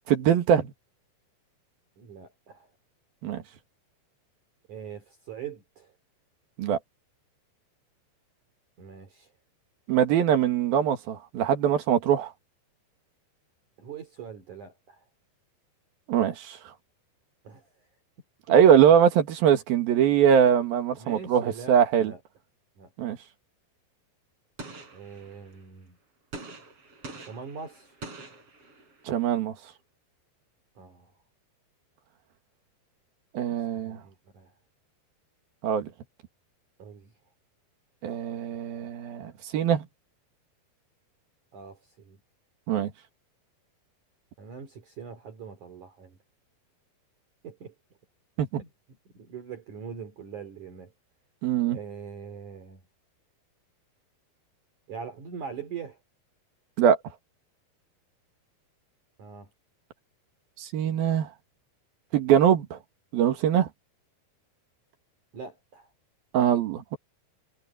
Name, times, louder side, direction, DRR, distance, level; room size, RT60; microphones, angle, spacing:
voice 1, 0.1-0.7 3.2-3.4 6.6-6.8 9.9-12.3 16.1-16.6 18.5-22.1 23.0-23.2 29.1-29.6 33.4-34.0 35.6-35.9 38.0-39.9 42.7-42.9 48.4-48.6 51.4-51.8 56.8-57.0 60.6-61.3 62.1-62.8 63.1-63.7 66.3-67.0, right 9 dB, 70° right, 3.6 m, -22 dB
voice 2, 2.0-2.7 4.7-5.9 8.8-9.3 13.8-15.0 17.4-17.7 18.5-18.6 21.0-22.2 22.8-22.9 24.9-26.0 27.2-28.0 30.8-31.1 33.7-34.5 36.8-37.1 41.5-42.2 44.4-46.2 47.4-47.7 48.6-48.7 49.1-50.9 51.7-52.8 54.9-56.0 59.2-59.5 65.3-65.9, right 6 dB, 50° right, 4.3 m, -42 dB
Gunshot gunfire, 24.6-25.6 26.3-29.1, right 3 dB, 35° right, 5.5 m, -44 dB
omnidirectional pair, 4.6 m